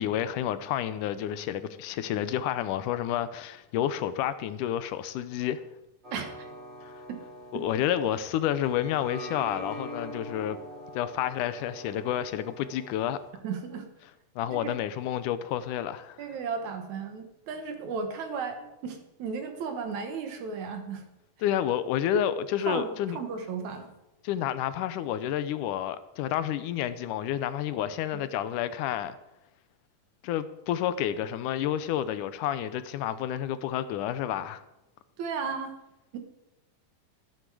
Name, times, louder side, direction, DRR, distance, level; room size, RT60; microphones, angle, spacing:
voice 1, 0.0-5.6 6.8-6.9 7.5-10.6 10.9-13.2 14.4-16.2 21.4-23.2 24.2-29.2 30.2-34.6, left 11 dB, 80° left, 2.2 m, -30 dB
sound 1, 6.0-13.3, equal, 20° right, 2.5 m, -43 dB
voice 2, 6.1-6.5 7.1-7.2 7.5-7.6 13.4-13.9 14.5-14.8 16.2-21.0 22.7-23.9 35.2-35.7 36.1-36.2, right 5 dB, 70° right, 2.5 m, -35 dB
13.0 x 11.5 x 4.8 m
omnidirectional pair, 3.7 m